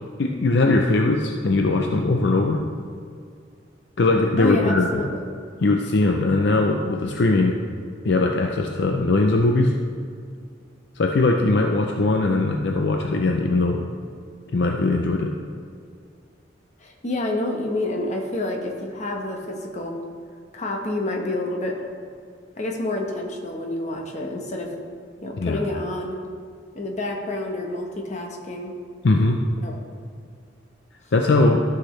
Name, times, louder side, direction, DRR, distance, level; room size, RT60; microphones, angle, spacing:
voice 1, 0.2-2.6 4.0-5.0 5.6-7.6 8.0-9.7 11.0-13.9 14.5-15.3 25.3-25.6 29.0-29.4 31.1-31.6, left 2 dB, 65° left, 2 dB, 0.5 m, -20 dB
voice 2, 4.4-5.3 16.8-19.9 20.5-21.7 22.6-24.7 25.2-26.2 26.7-28.7 29.6-29.7, left 2 dB, 40° left, 1 dB, 1.1 m, -28 dB
13.5 x 6.0 x 3.2 m, 2.3 s
head